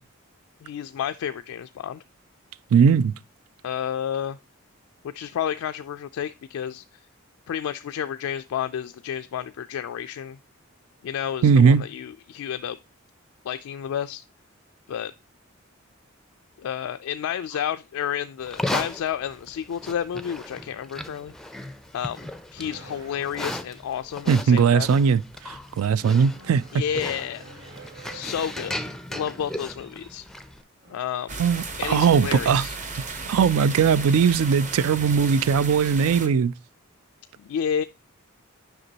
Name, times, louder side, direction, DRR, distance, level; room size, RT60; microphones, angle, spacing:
voice 1, 0.6-2.0 3.6-4.4 5.0-6.8 7.5-10.4 11.0-12.8 13.4-14.2 14.9-15.1 16.6-21.3 21.9-22.2 22.5-24.9 26.7-27.5 28.1-28.8 29.1-30.3 30.9-31.4 31.8-32.8 37.4-37.8, left 9 dB, 80° left, 0.3 m, -30 dB
voice 2, 2.7-3.1 11.4-11.8 24.3-26.6 31.4-32.6 33.3-36.5, right 6 dB, 80° right, 0.3 m, -19 dB
Livestock farm animals working animals, 18.4-30.6, left 1 dB, ahead, 0.4 m, -36 dB
sound 1, 22.6-23.8 26.2-28.6 30.7-31.1 31.5-32.1, right 2 dB, 55° right, 3.7 m, -47 dB
sound 2, 31.3-36.3, right 3 dB, 35° right, 0.9 m, -35 dB
7.9 x 5.9 x 2.8 m
head